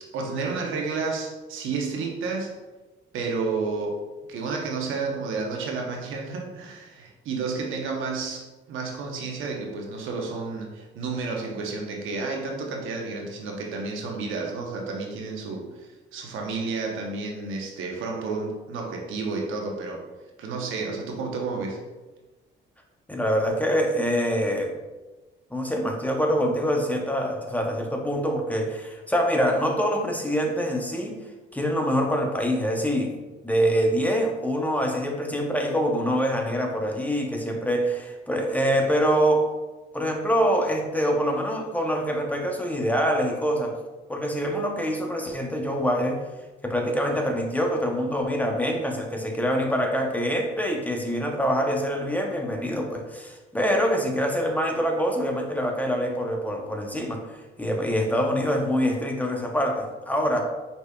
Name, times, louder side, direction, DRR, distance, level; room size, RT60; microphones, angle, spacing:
voice 1, 0.1-2.6 3.1-20.0 20.4-21.8, right 4 dB, 85° right, 1 dB, 0.9 m, -31 dB
voice 2, 23.1-24.7 25.5-31.2 31.5-33.2 33.4-39.5 39.9-43.8 44.1-46.2 46.6-60.4, equal, 10° left, 2 dB, 0.7 m, -25 dB
4.9 x 4.1 x 2.3 m, 1.2 s
cardioid pair, 90°, 20 cm